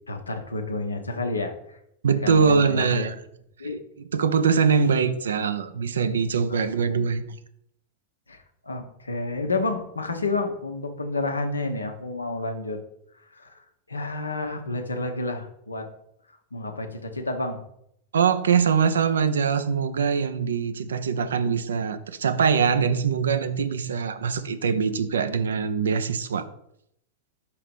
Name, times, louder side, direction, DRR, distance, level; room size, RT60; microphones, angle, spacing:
voice 1, 0.1-1.8 2.2-3.0 3.6-3.8 5.0-5.1 6.5-6.6 8.3-12.8 13.3-15.9 16.5-17.6, left 2 dB, 80° left, 0.9 m, -30 dB
voice 2, 2.0-3.2 4.1-7.2 18.1-26.5, right 6 dB, 65° right, 0.6 m, -23 dB
4.9 x 4.8 x 5.3 m
figure-of-eight pair, 90°, 0 cm